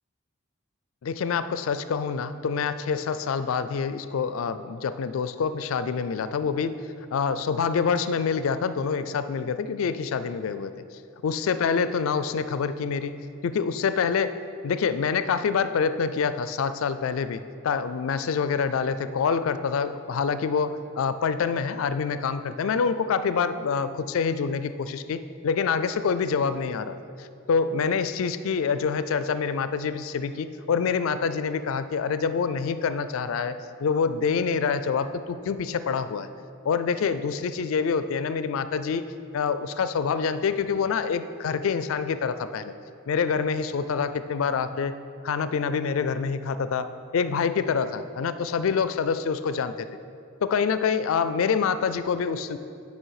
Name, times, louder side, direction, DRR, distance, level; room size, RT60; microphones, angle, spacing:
voice 1, 1.0-6.8 7.1-10.7 11.2-13.1 13.4-14.4 14.6-36.3 36.6-39.0 39.3-42.7 43.1-44.9 45.2-46.9 47.1-49.9 50.4-52.6, left 6 dB, 75° left, 12 dB, 0.4 m, -26 dB
8.9 x 5.4 x 4.8 m, 2.5 s
head